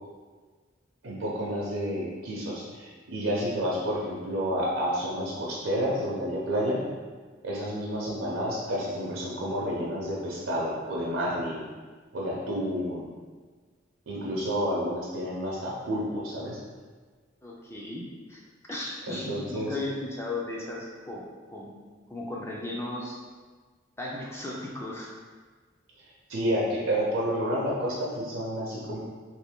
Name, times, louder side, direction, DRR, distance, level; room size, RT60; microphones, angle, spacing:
voice 1, 1.0-6.8 7.4-11.6 12.1-13.1 14.1-16.6 19.1-19.8 26.3-29.0, equal, 80° right, -5 dB, 0.6 m, -30 dB
voice 2, 17.4-18.0 18.3-18.4 18.7-21.7 22.1-23.2 24.0-25.1, left 2 dB, 15° left, -3 dB, 0.4 m, -36 dB
2.9 x 2.6 x 3.5 m, 1.4 s
head